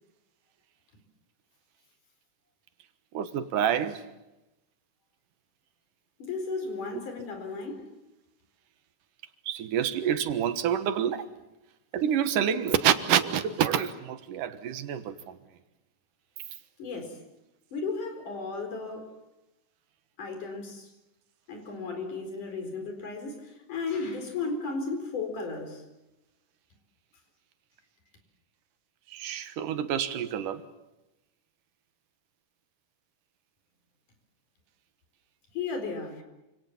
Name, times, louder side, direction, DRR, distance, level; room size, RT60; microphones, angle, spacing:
voice 1, 3.1-4.0 9.5-11.3 11.9-15.4 29.1-30.6, right 9 dB, 90° right, 10 dB, 2.9 m, -27 dB
voice 2, 6.2-7.9 16.8-17.2 17.7-19.1 20.2-20.9 21.5-25.8 35.5-36.2, left 4 dB, 75° left, 6 dB, 5.9 m, -34 dB
28.0 x 26.5 x 7.3 m, 0.98 s
omnidirectional pair, 3.6 m